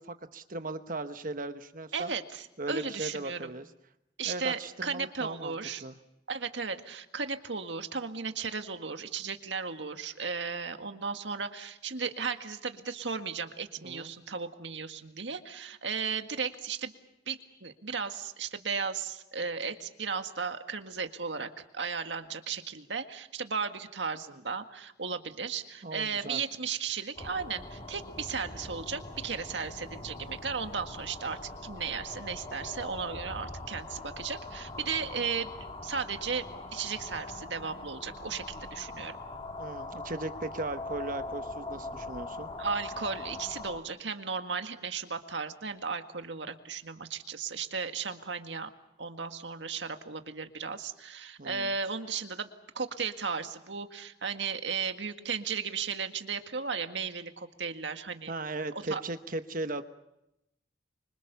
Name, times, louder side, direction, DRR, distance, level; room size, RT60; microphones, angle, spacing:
voice 1, 0.0-2.1 2.6-3.7 4.2-5.6 5.8-6.0 13.8-14.1 25.8-26.4 39.6-42.5 51.4-51.7 58.3-59.8, right 2 dB, 45° right, 9 dB, 1.1 m, -37 dB
voice 2, 1.9-3.5 4.2-5.8 6.3-16.9 17.3-35.5 35.8-39.2 42.6-48.7 49.0-52.5 52.8-58.3 58.7-59.0, right 5 dB, 80° right, 7 dB, 1.9 m, -35 dB
sound 1, 27.2-43.8, left 2 dB, 30° left, 2.2 m, -42 dB
26.0 x 25.0 x 7.0 m, 0.88 s
head